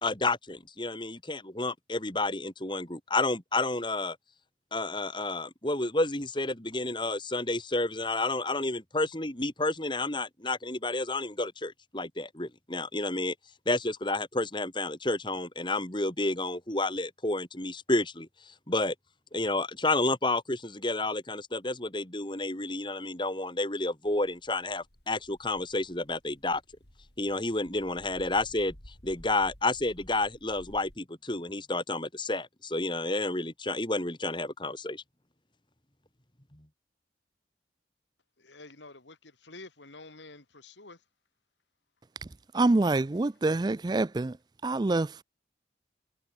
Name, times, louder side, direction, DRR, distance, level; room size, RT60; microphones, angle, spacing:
voice 1, 0.0-4.2 4.7-13.3 13.7-18.9 19.3-26.6 27.2-28.7 29.0-35.0, left 2 dB, 25° left, 3.2 m, -30 dB
sound 1, 24.0-31.0, equal, 65° left, 6.3 m, -54 dB
voice 2, 38.4-41.0, left 3 dB, 85° left, 3.2 m, -49 dB
voice 3, 42.5-44.3 44.6-45.2, right 2 dB, 25° right, 0.4 m, -26 dB
head